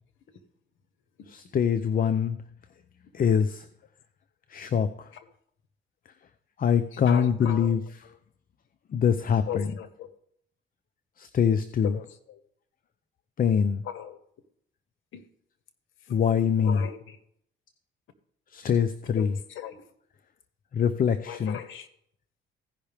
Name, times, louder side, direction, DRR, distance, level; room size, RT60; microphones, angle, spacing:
voice 1, 1.3-2.4 3.1-3.7 4.5-5.1 6.6-7.8 8.9-9.7 11.2-12.0 13.4-13.8 16.1-16.8 18.5-19.4 20.7-21.6, left 7 dB, 45° left, 0.6 m, -24 dB
voice 2, 7.1-7.8 9.5-10.1 11.8-12.4 13.8-14.2 15.1-15.2 16.1-16.2 16.6-17.2 19.1-19.8 21.2-21.9, left 9 dB, 80° left, 1.1 m, -38 dB
16.0 x 5.6 x 3.5 m
cardioid pair, 90°, 20 cm